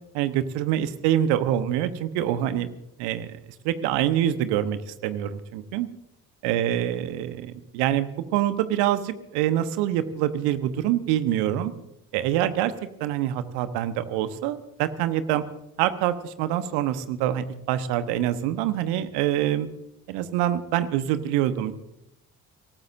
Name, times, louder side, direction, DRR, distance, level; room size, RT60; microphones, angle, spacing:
voice 1, 0.1-2.7 3.0-3.4 3.6-5.9 6.4-11.7 12.1-12.7 13.0-15.4 15.8-19.7 20.1-21.7, right 11 dB, 65° right, 12 dB, 1.2 m, -25 dB
25.0 x 18.5 x 2.7 m, 0.81 s
figure-of-eight pair, 40°, 43 cm